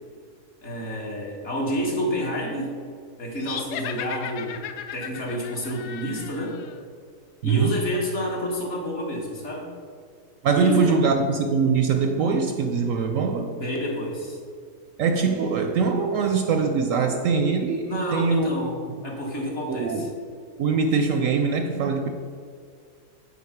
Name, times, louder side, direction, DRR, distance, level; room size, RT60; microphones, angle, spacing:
voice 1, 0.6-2.8 3.2-4.6 4.9-6.6 7.4-9.7 10.5-11.0 13.5-14.4 17.9-18.8 19.0-20.1, equal, 50° left, -2 dB, 1.7 m, -29 dB
sound 1, 3.4-6.8, left 8 dB, 85° left, 1.2 m, -36 dB
voice 2, 7.4-7.8 10.4-13.5 15.0-18.5 18.9-19.0 19.7-20.1 20.6-22.1, right 5 dB, 70° right, 6 dB, 0.8 m, -22 dB
8.4 x 4.2 x 5.8 m, 2.2 s
omnidirectional pair, 1.6 m